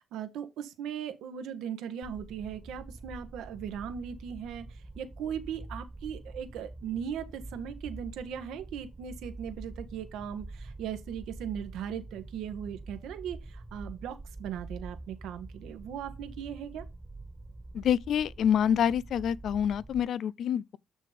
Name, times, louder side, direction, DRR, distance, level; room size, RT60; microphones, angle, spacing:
voice 1, 0.0-16.8, right 8 dB, 75° right, 1.4 m, -38 dB
sound 1, 2.0-20.0, right 2 dB, 15° right, 1.5 m, -46 dB
voice 2, 17.7-20.8, left 9 dB, 60° left, 0.4 m, -27 dB
6.7 x 6.1 x 3.4 m
cardioid pair, 85°, 0 cm